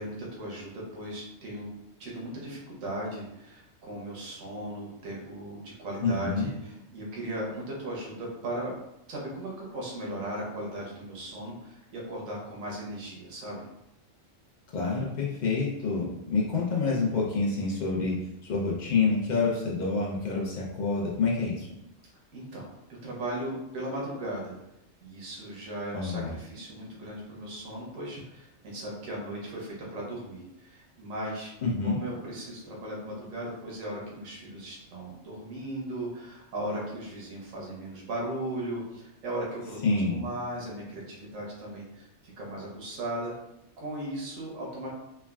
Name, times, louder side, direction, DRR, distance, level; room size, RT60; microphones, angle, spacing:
voice 1, 0.0-1.7 2.0-8.7 9.1-13.6 22.3-22.7 23.0-24.6 25.0-31.5 31.8-43.3 43.8-44.9, right 1 dB, 85° right, -4 dB, 1.1 m, -37 dB
voice 2, 6.0-6.5 14.7-18.1 18.4-21.7 25.9-26.3 31.6-32.0 39.8-40.2, left 4 dB, 80° left, -4 dB, 0.4 m, -27 dB
3.3 x 2.1 x 2.2 m, 0.88 s
omnidirectional pair, 1.4 m